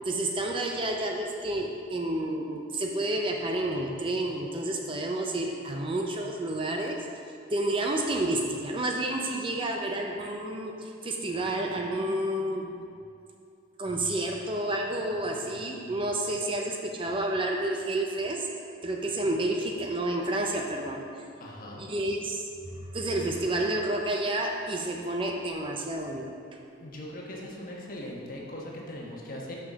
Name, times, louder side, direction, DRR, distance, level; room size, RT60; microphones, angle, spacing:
voice 1, 0.1-7.1 7.5-12.8 13.8-18.5 18.8-21.0 21.8-26.3, right 1 dB, 25° right, 1 dB, 0.5 m, -30 dB
voice 2, 15.1-16.0 19.2-19.3 21.4-21.9 26.8-29.5, left 1 dB, 45° left, -3 dB, 1.3 m, -41 dB
6.2 x 5.8 x 6.2 m, 2.5 s
head